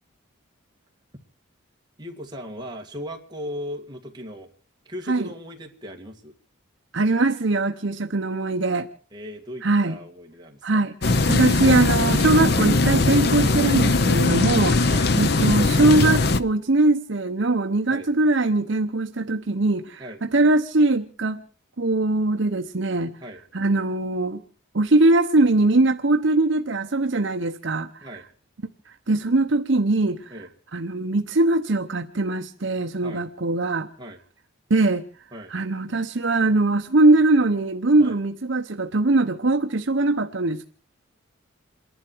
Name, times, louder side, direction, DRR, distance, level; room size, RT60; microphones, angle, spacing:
voice 1, 2.0-4.5 4.9-6.3 9.1-10.9 14.9-15.1 17.9-18.1 20.0-20.2 23.2-23.4 28.0-28.2 30.3-30.5 33.0-33.2 34.0-34.2 35.3-35.5 38.0-38.2, equal, 20° right, 2.2 m, -37 dB
voice 2, 6.9-8.9 9.6-10.0 10.6-21.4 21.8-23.1 23.5-24.4 24.7-27.9 28.9-30.3 30.7-33.9 34.7-35.0 35.5-40.7, right 2 dB, 60° right, 0.9 m, -21 dB
sound 1, 11.0-16.4, left 3 dB, 50° left, 0.7 m, -20 dB
28.5 x 11.0 x 4.6 m
head